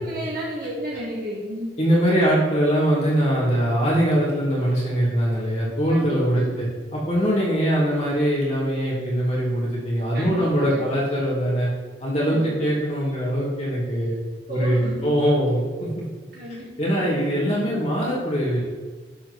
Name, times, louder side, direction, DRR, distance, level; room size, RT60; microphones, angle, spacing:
voice 1, 0.0-1.7 5.9-6.6 10.1-10.8 12.3-12.7 14.5-15.2 16.3-16.7 17.0-17.1, equal, 55° right, -6 dB, 1.8 m, -33 dB
voice 2, 1.8-11.7 12.0-14.2 14.5-16.0 16.8-18.6, equal, 40° left, -6 dB, 2.9 m, -22 dB
11.0 x 4.6 x 6.3 m, 1.4 s
head